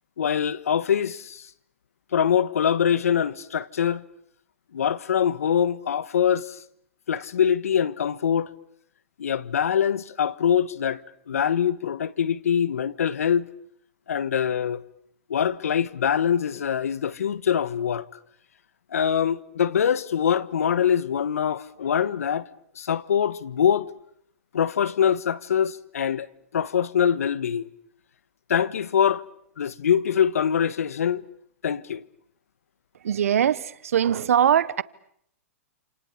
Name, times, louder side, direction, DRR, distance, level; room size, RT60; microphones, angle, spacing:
voice 1, 0.2-1.4 2.1-4.0 4.7-6.6 7.1-8.5 9.2-11.0 11.3-13.5 14.1-14.8 15.3-18.0 18.9-22.5 22.8-23.9 24.5-26.3 26.5-27.7 28.5-29.2 29.6-31.3 31.6-32.0, left 8 dB, 80° left, 1.3 m, -23 dB
voice 2, 33.0-34.8, right 9 dB, 75° right, 1.1 m, -21 dB
29.0 x 28.5 x 7.3 m
hypercardioid pair, 125°, 8 cm